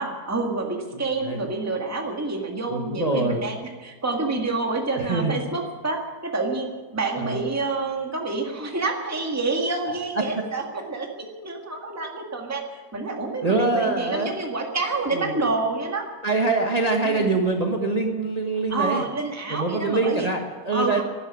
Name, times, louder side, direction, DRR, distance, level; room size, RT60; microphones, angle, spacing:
voice 1, 0.0-11.1 11.4-16.1 17.0-17.3 18.7-20.3 20.7-21.0, right 3 dB, 10° right, 1 dB, 1.7 m, -28 dB
voice 2, 0.9-1.5 2.7-3.4 4.9-5.5 7.1-7.4 13.1-14.3 15.1-15.4 16.2-19.0 19.5-21.0, right 3 dB, 25° right, 2 dB, 1.3 m, -24 dB
12.5 x 12.0 x 9.7 m, 1.4 s
omnidirectional pair, 1.8 m